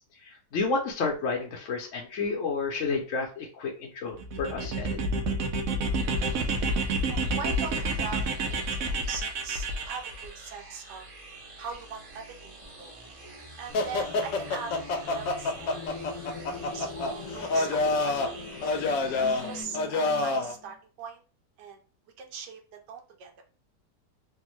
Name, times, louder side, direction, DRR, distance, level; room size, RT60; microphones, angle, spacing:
voice 1, 0.2-5.0, left 4 dB, 60° left, 0 dB, 0.9 m, -31 dB
sound 1, 4.2-10.3, right 2 dB, 65° right, 1.0 m, -29 dB
sound 2, 5.9-19.6, right 2 dB, 35° right, 0.5 m, -47 dB
voice 2, 6.9-11.1 11.6-13.0 13.6-15.9 16.5-18.2 19.1-21.2 21.6-21.8 22.2-22.6 22.9-23.4, right 6 dB, 80° right, 4 dB, 1.3 m, -41 dB
sound 3, 13.7-20.5, left 3 dB, 85° left, 1.2 m, -29 dB
3.4 x 2.1 x 3.0 m, 0.36 s
omnidirectional pair, 1.8 m